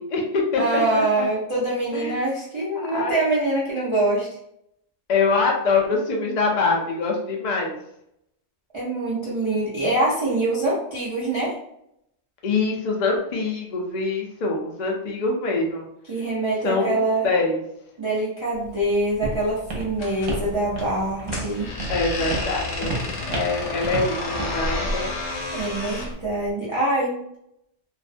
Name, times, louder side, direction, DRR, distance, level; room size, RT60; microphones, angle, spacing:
voice 1, 0.0-1.3 1.9-2.1 2.9-3.1 5.1-7.8 12.4-15.8 16.6-17.6 21.9-25.1, left 3 dB, 65° left, 0 dB, 0.4 m, -24 dB
voice 2, 0.6-4.3 8.7-11.5 16.1-17.3 18.0-21.7 25.5-27.2, right 2 dB, 40° right, -8 dB, 0.4 m, -24 dB
Walk footsteps, 18.5-26.5, right 1 dB, 75° right, 1.0 m, -33 dB
sound 1, 19.9-26.2, left 2 dB, 80° left, 1.0 m, -31 dB
2.5 x 2.1 x 2.5 m, 0.77 s
omnidirectional pair, 1.4 m